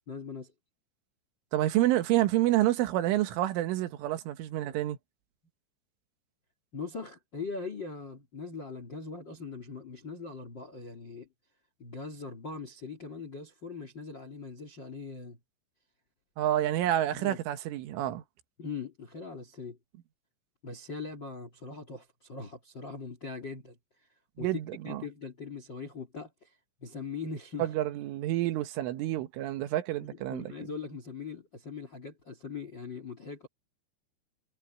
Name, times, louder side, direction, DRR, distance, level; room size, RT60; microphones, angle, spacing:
voice 1, 0.1-0.5 6.7-11.3 11.8-15.4 17.1-17.4 18.6-19.8 20.6-24.1 24.4-27.7 30.0-33.5, left 4 dB, 30° left, 2.2 m, -41 dB
voice 2, 1.5-5.0 16.4-18.2 24.4-25.0 27.6-30.5, right 14 dB, 80° right, 3.9 m, -28 dB
omnidirectional pair, 5.7 m